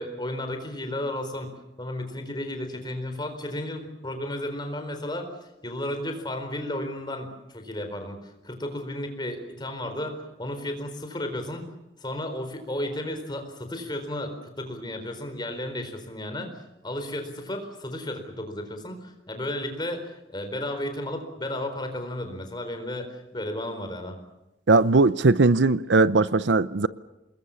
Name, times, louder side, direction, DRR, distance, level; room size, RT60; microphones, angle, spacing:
voice 1, 0.0-1.5 1.8-5.3 5.6-11.6 12.0-16.5 16.8-24.2, left 1 dB, 25° left, 4.3 m, -33 dB
voice 2, 24.7-26.9, right 3 dB, 75° right, 0.7 m, -19 dB
27.0 x 21.0 x 7.1 m
head